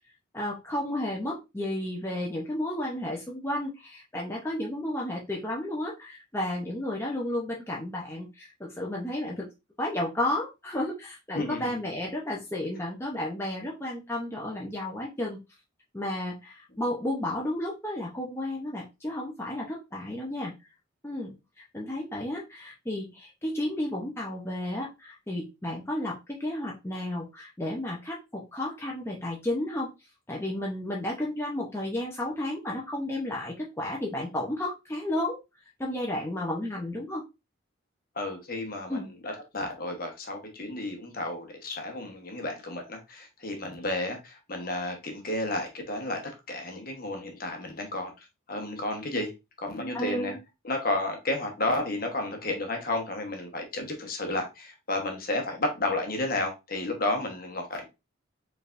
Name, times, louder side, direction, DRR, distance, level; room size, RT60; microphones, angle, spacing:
voice 1, 0.3-9.5 9.8-15.4 15.9-20.5 21.0-21.3 21.7-29.9 30.3-35.4 35.8-37.2 38.9-39.1 49.9-50.4, left 1 dB, 15° left, 0.6 m, -32 dB
voice 2, 38.2-48.1 48.5-49.3 49.6-50.4 50.6-57.9, left 2 dB, 45° left, 1.0 m, -32 dB
4.7 x 3.4 x 2.5 m
head